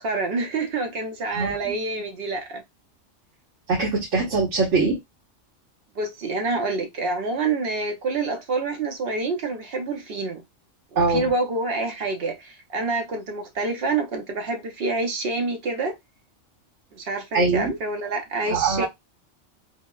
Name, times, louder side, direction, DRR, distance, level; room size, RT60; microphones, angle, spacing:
voice 1, 0.0-2.6 6.0-10.4 10.9-15.9 16.9-18.9, right 3 dB, 60° right, 0.8 m, -27 dB
voice 2, 1.3-1.7 3.7-5.0 11.0-11.3 17.3-17.8 18.5-18.9, right 3 dB, 75° right, 1.3 m, -22 dB
3.6 x 2.0 x 2.2 m
omnidirectional pair, 1.3 m